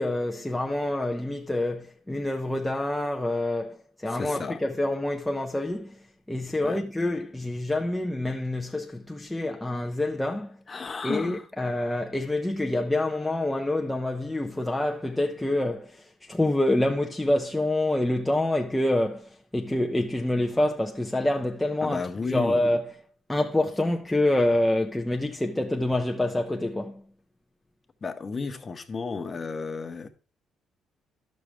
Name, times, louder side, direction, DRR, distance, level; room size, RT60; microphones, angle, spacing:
voice 1, 0.0-6.0 6.3-10.6 11.0-22.0 22.3-22.9 23.3-27.0, left 1 dB, 5° left, 0.5 m, -27 dB
voice 2, 4.1-4.6 6.6-6.8 10.7-11.5 21.8-22.6 28.0-30.1, left 4 dB, 30° left, 0.8 m, -33 dB
11.5 x 6.3 x 3.3 m
cardioid pair, 135°, 0 cm